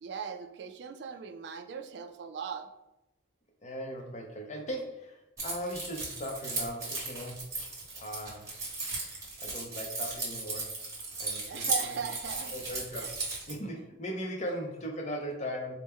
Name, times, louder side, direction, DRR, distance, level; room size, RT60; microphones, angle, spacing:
voice 1, 0.0-2.7 11.4-12.5 13.0-13.1, right 6 dB, 60° right, 6 dB, 0.3 m, -38 dB
voice 2, 3.6-7.5 8.0-8.5 9.4-10.8 11.2-12.0 12.5-15.7, equal, 35° left, 2 dB, 0.6 m, -38 dB
Keys jangling, 5.4-13.5, right 3 dB, 15° right, 1.1 m, -36 dB
4.2 x 2.1 x 3.6 m, 0.91 s
head